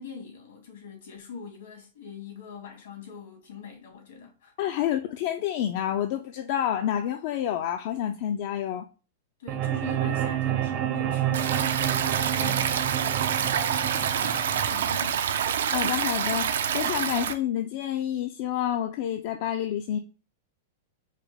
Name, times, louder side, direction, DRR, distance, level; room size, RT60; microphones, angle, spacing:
voice 1, 0.0-4.5 9.4-15.2, left 6 dB, 75° left, 2.2 m, -43 dB
voice 2, 4.6-8.9 15.7-20.0, left 10 dB, 50° left, 0.4 m, -28 dB
sound 1, 9.5-15.5, right 11 dB, 35° right, 0.6 m, -29 dB
Stream, 11.3-17.3, right 8 dB, 85° right, 0.5 m, -27 dB
4.9 x 2.3 x 3.3 m
hypercardioid pair, 145°, 0 cm